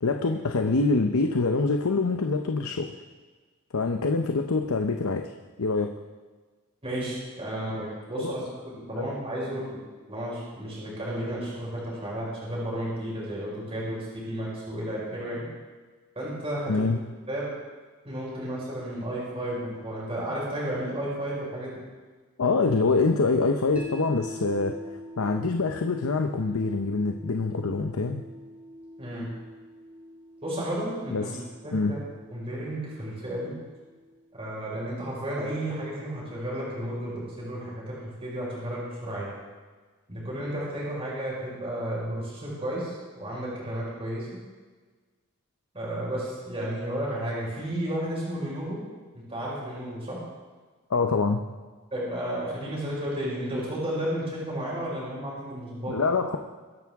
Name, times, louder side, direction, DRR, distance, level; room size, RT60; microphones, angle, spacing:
voice 1, 0.0-2.9 3.7-5.3 5.6-5.9 8.2-8.4 9.0-9.1 16.7-17.0 22.4-28.2 31.1-31.4 31.7-31.9 50.9-51.4 55.9-56.4, left 3 dB, 75° left, 5 dB, 0.8 m, -25 dB
voice 2, 6.8-9.8 10.1-15.4 16.1-16.8 17.3-17.4 18.0-21.8 29.0-29.3 30.4-31.3 31.6-32.0 32.3-33.5 34.3-39.3 40.1-44.3 45.7-48.8 49.1-50.2 51.9-56.0, right 1 dB, 25° right, -6 dB, 5.0 m, -32 dB
sound 1, 23.8-35.9, left 1 dB, 5° right, 2.8 m, -45 dB
22.5 x 10.5 x 3.6 m, 1.4 s
head